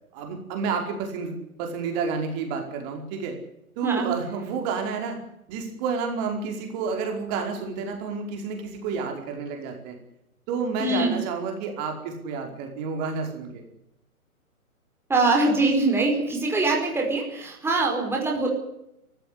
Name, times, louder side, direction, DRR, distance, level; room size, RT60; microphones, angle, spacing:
voice 1, 0.1-3.3 3.8-5.2 5.5-10.0 10.5-13.6, right 5 dB, 30° right, 3 dB, 4.9 m, -30 dB
voice 2, 10.8-11.2 15.1-18.5, right 2 dB, 5° right, 0 dB, 5.1 m, -23 dB
23.0 x 15.0 x 9.9 m, 0.81 s
figure-of-eight pair, 135°, 44 cm